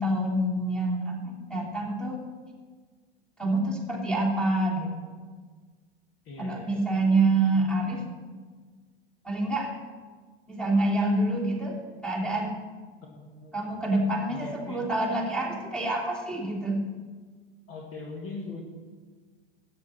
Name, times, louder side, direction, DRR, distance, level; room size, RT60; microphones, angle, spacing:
voice 1, 0.0-2.2 3.4-5.1 6.4-8.0 9.2-9.7 10.5-11.8 12.0-12.6 13.5-16.8, right 2 dB, 5° left, -2 dB, 3.0 m, -27 dB
voice 2, 6.2-6.8 7.5-7.8 13.0-13.7 14.3-14.8 17.7-18.6, left 3 dB, 40° left, 1 dB, 1.8 m, -41 dB
13.0 x 9.3 x 4.4 m, 1.5 s
hypercardioid pair, 90°, 31 cm